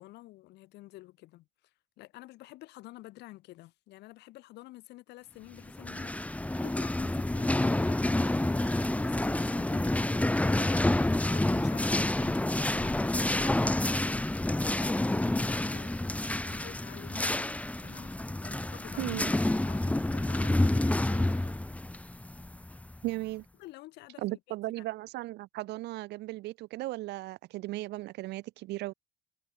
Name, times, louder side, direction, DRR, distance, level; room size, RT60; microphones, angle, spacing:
voice 1, 0.0-1.5 2.0-18.1 18.4-19.2 19.5-21.6 23.6-24.4 24.8-24.9, left 18 dB, 85° left, 7.9 m, -50 dB
sound 1, 5.7-23.1, left 1 dB, 10° left, 2.7 m, -29 dB
voice 2, 19.0-19.3 23.0-23.4 24.2-28.9, right 18 dB, 85° right, 5.9 m, -36 dB
cardioid pair, 110°, 17 cm